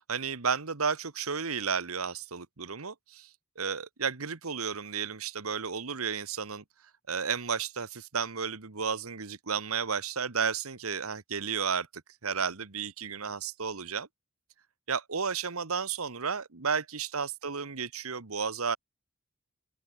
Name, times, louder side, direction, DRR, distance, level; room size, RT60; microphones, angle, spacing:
voice 1, 0.0-3.3 3.6-6.6 7.1-11.9 12.2-14.1 14.9-18.8, right 6 dB, 90° right, 1.5 m, -32 dB
open air
head